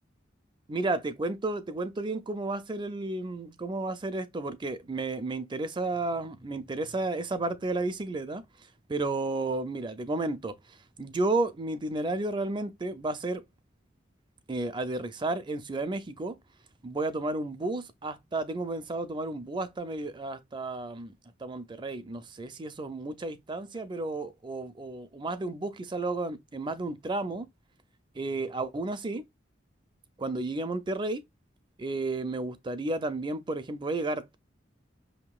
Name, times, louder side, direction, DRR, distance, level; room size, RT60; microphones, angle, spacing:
voice 1, 0.7-8.4 8.9-13.4 14.5-16.4 16.8-21.1 21.4-27.5 28.2-29.2 30.2-31.2 31.8-34.4, right 2 dB, 25° right, 0.5 m, -32 dB
5.8 x 2.8 x 2.3 m
head